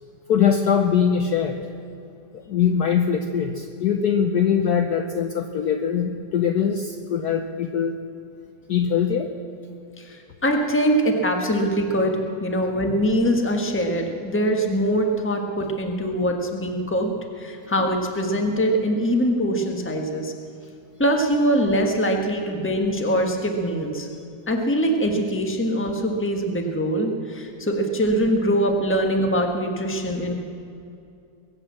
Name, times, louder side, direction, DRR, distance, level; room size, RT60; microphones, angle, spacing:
voice 1, 0.3-1.6 2.3-8.0 8.7-9.3, left 7 dB, 65° left, 6 dB, 1.1 m, -22 dB
voice 2, 10.0-20.3 21.0-24.1 24.5-30.3, equal, 5° left, 3 dB, 1.1 m, -23 dB
22.0 x 8.5 x 7.4 m, 2.6 s
omnidirectional pair, 2.2 m